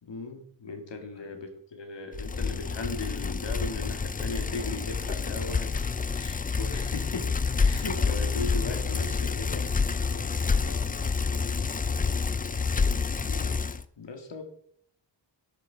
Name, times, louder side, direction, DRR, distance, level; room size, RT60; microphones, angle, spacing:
voice 1, 0.0-7.3 7.6-9.7 13.2-13.6 14.0-14.4, left 3 dB, 70° left, 5 dB, 2.0 m, -38 dB
Bicycle, 2.1-13.8, left 5 dB, 20° left, 0.3 m, -28 dB
voice 2, 10.0-11.5 12.8-13.3, left 1 dB, 50° left, 0 dB, 3.9 m, -49 dB
11.5 x 6.6 x 4.6 m, 0.65 s
wide cardioid pair, 105°, 45 cm